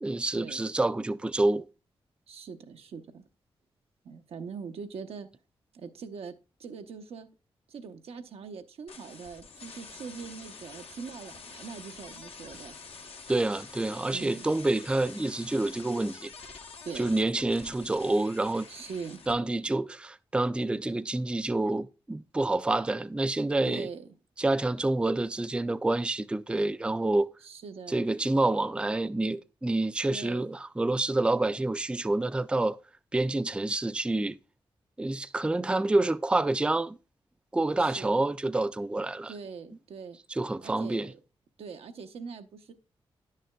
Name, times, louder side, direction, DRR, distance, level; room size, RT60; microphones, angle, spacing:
voice 1, 0.0-1.6 13.3-16.3 17.0-18.7 19.3-23.9 24.4-27.3 27.9-32.8 33.1-34.4 35.0-37.0 37.5-39.3 40.3-41.1, right 2 dB, 10° right, 0.3 m, -28 dB
voice 2, 2.3-3.2 4.0-5.3 5.7-6.3 6.6-7.3 7.7-12.8 14.1-14.5 16.8-17.1 18.7-19.2 23.6-24.1 27.4-28.0 30.1-30.5 37.7-38.1 39.3-40.2 40.6-41.2 41.6-42.7, right 5 dB, 80° right, 0.6 m, -42 dB
sound 1, 8.9-19.3, left 4 dB, 80° left, 0.9 m, -47 dB
10.0 x 6.5 x 2.2 m
cardioid pair, 50°, 10 cm